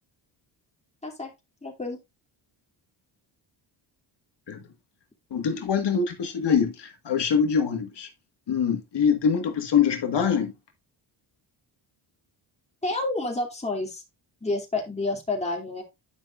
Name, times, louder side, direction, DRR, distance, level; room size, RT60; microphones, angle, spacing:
voice 1, 1.6-2.0 12.8-14.0 14.4-15.8, left 2 dB, 15° left, 2.7 m, -29 dB
voice 2, 5.3-8.1 8.5-10.5, left 7 dB, 55° left, 1.8 m, -24 dB
10.5 x 5.7 x 2.5 m
cardioid pair, 110°, 48 cm